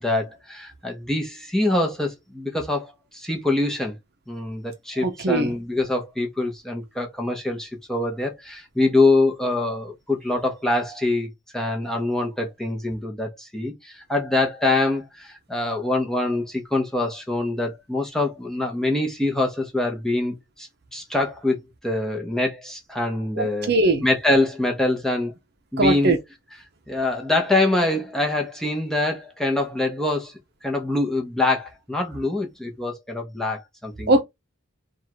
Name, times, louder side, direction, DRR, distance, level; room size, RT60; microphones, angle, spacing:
voice 1, 0.0-4.0 4.3-23.7 24.0-25.3 25.7-26.2 26.9-30.3 30.6-34.1, left 2 dB, ahead, 0.9 m, -24 dB
voice 2, 5.0-5.5 23.4-24.1 25.8-26.2 34.1-34.2, right 2 dB, 50° right, 0.7 m, -20 dB
3.6 x 2.5 x 4.4 m
head